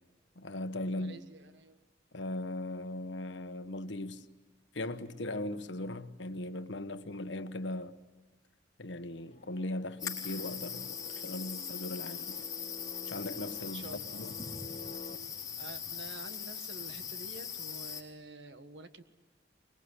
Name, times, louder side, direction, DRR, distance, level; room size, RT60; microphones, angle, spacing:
voice 1, 0.4-1.2 2.1-4.2 4.7-7.9 8.8-12.5 13.1-14.3, left 1 dB, 70° left, 1.2 m, -38 dB
voice 2, 0.9-1.8 13.6-14.2 15.6-19.0, right 2 dB, 70° right, 1.5 m, -49 dB
sound 1, 9.2-15.2, left 2 dB, 40° left, 1.0 m, -50 dB
sound 2, 10.0-18.0, left 7 dB, 20° left, 4.1 m, -41 dB
25.0 x 21.5 x 9.8 m
head